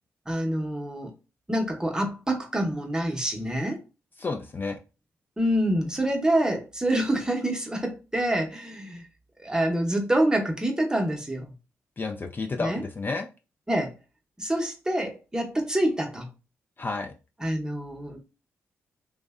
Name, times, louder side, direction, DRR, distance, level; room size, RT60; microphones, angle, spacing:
voice 1, 0.3-1.1 1.5-3.8 5.4-9.0 9.4-11.5 12.6-12.8 13.7-14.0 14.4-16.3 17.4-18.2, right 1 dB, 10° right, 0.7 m, -26 dB
voice 2, 4.2-4.8 12.0-13.3 16.8-17.1, left 3 dB, 35° left, 0.3 m, -31 dB
2.6 x 2.1 x 2.3 m
supercardioid pair, 45°, 6 cm